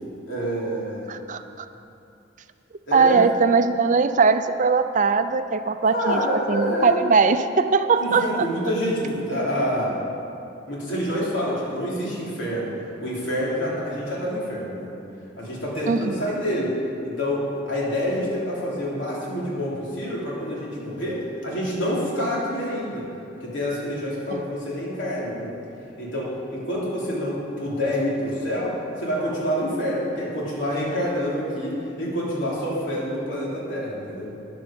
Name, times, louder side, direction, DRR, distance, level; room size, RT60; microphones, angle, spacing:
voice 1, 0.3-1.1 2.9-3.2 5.9-6.9 7.9-10.0 10.7-12.7 13.0-14.9 15.4-16.7 17.0-23.1 23.4-25.5 26.0-34.3, equal, 80° left, -5 dB, 3.3 m, -27 dB
voice 2, 1.1-1.7 2.9-6.2 6.5-8.5 15.9-16.2 24.3-24.4, right 5 dB, 40° right, 10 dB, 0.5 m, -20 dB
12.5 x 10.5 x 5.2 m, 2.7 s
head